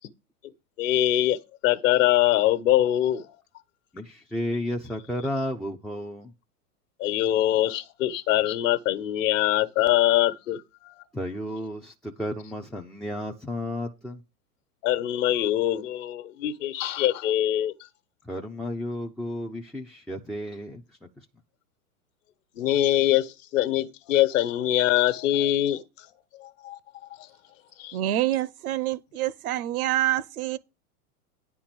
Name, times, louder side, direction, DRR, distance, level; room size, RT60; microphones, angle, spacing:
voice 1, 0.8-3.4 7.0-11.1 14.8-17.7 22.5-27.3 27.8-28.0, left 13 dB, 55° left, 1.3 m, -24 dB
voice 2, 3.9-6.3 11.1-14.2 18.2-21.3, left 1 dB, ahead, 0.4 m, -33 dB
voice 3, 27.9-30.6, right 13 dB, 70° right, 0.9 m, -26 dB
9.9 x 4.4 x 7.6 m
hypercardioid pair, 105°, 46 cm